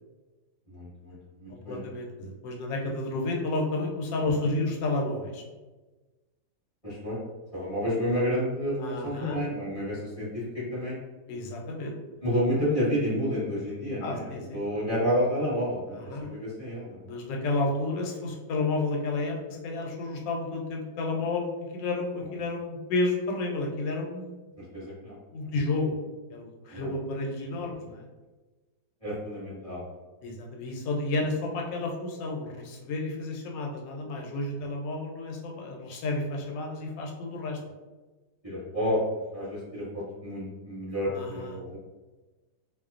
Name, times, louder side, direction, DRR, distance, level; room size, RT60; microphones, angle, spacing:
voice 1, 0.7-1.8 4.3-4.4 6.8-7.2 7.5-10.4 10.7-11.0 12.2-17.0 24.6-25.5 26.7-26.9 29.0-30.0 38.4-39.0 39.3-41.8, equal, 25° left, -11 dB, 1.0 m, -30 dB
voice 2, 1.5-5.4 8.8-9.4 11.3-11.9 14.0-14.6 15.9-16.3 17.0-24.3 25.3-25.9 26.3-28.1 30.2-37.6 41.0-41.6, left 2 dB, 85° left, 0 dB, 1.3 m, -31 dB
2.9 x 2.1 x 2.4 m, 1.2 s
omnidirectional pair, 1.9 m